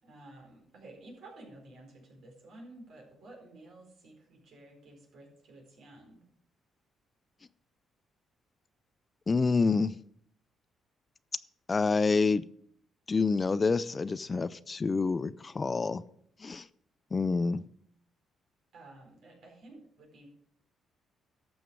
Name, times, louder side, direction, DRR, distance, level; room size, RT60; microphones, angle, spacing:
voice 1, 0.0-6.2 18.7-20.3, right 2 dB, 70° right, 0 dB, 4.3 m, -52 dB
voice 2, 9.3-10.0 11.7-12.4 13.1-16.0 16.4-16.6 17.1-17.6, left 4 dB, 30° left, 16 dB, 0.4 m, -27 dB
12.5 x 7.1 x 4.7 m, 0.68 s
cardioid pair, 90°, 0 cm